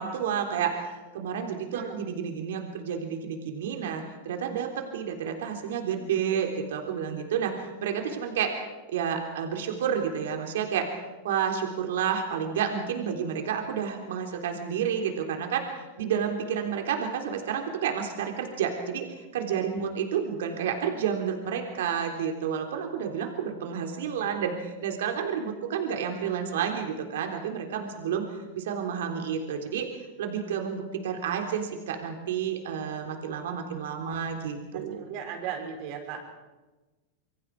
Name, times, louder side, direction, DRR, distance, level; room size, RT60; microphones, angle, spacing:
voice 1, 0.0-8.6 8.9-10.9 11.2-19.0 19.3-28.2 28.5-29.9 30.2-35.0, right 7 dB, 80° right, 3 dB, 3.5 m, -30 dB
voice 2, 34.7-36.2, right 8 dB, 50° right, 1 dB, 6.3 m, -37 dB
27.0 x 23.0 x 4.9 m, 1.2 s
supercardioid pair, 135°, 0 cm